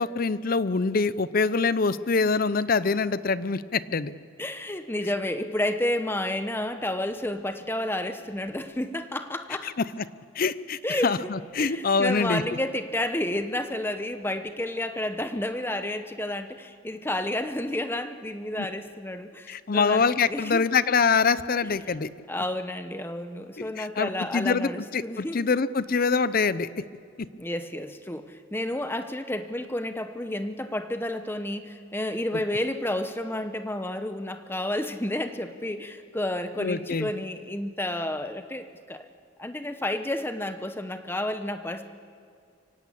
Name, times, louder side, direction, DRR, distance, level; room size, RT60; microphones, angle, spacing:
voice 1, 0.0-4.1 9.6-9.8 10.4-12.4 19.5-22.1 23.6-26.7 36.6-37.1, left 4 dB, 45° left, 16 dB, 0.5 m, -25 dB
voice 2, 4.4-9.7 10.8-11.3 11.6-20.6 21.9-25.5 26.1-26.2 27.4-39.1 39.4-41.9, left 1 dB, 10° left, 9 dB, 1.0 m, -31 dB
24.5 x 17.0 x 8.4 m, 2.4 s
head